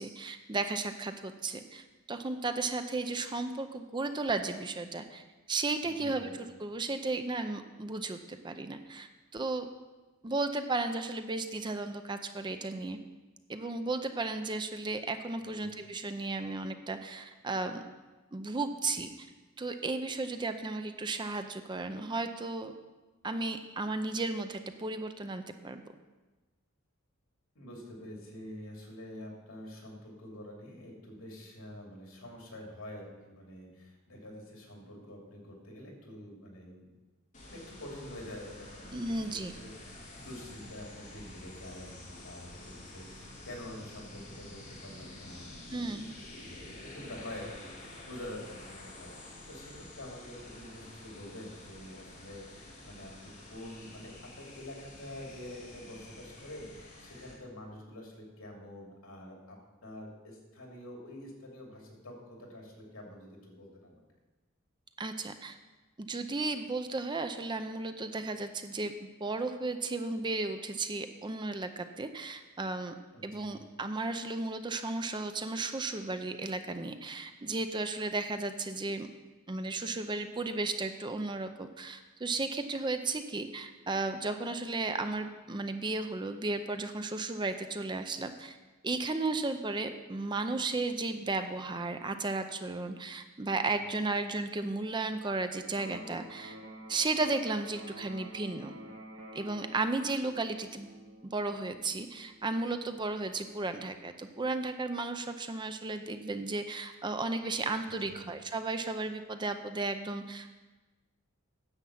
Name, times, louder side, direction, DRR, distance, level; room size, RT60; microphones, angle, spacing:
voice 1, 0.0-6.3 6.6-9.7 10.2-13.0 13.5-17.8 18.3-19.3 19.6-22.7 23.2-25.8 38.9-39.5 45.7-46.1 65.0-65.6 66.0-72.9 73.2-79.1 79.5-88.6 88.8-96.6 96.9-98.8 99.3-100.9 101.2-110.5, right 3 dB, 20° right, 8 dB, 0.5 m, -34 dB
voice 2, 5.8-6.3 15.4-15.8 27.5-36.9 37.4-46.0 46.3-64.0 73.1-73.6 93.8-94.0 108.1-108.3, left 1 dB, 80° left, 0 dB, 2.7 m, -47 dB
sound 1, 37.3-57.3, left 1 dB, 35° left, 2.5 m, -49 dB
Electric guitar, 95.8-103.7, right 1 dB, 70° right, 1.6 m, -49 dB
10.0 x 7.3 x 5.8 m, 1.2 s
head